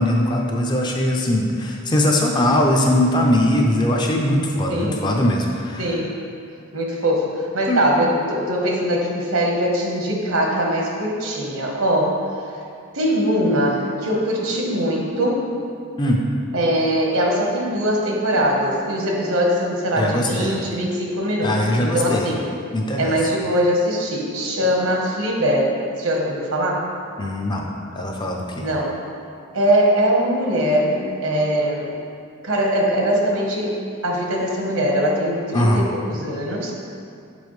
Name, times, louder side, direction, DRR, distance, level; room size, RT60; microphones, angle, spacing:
voice 1, 0.0-5.8 7.7-7.8 16.0-16.2 20.0-20.5 21.4-22.2 22.7-23.1 27.2-27.6 27.9-28.4 35.5-35.8, left 1 dB, 20° left, 0 dB, 0.4 m, -20 dB
voice 2, 4.7-5.1 5.8-6.1 6.7-12.2 12.9-15.4 16.5-22.5 23.0-26.8 28.6-28.9 29.5-31.9 32.4-36.7, equal, 80° right, -1 dB, 1.1 m, -21 dB
6.9 x 5.2 x 3.1 m, 2.4 s
head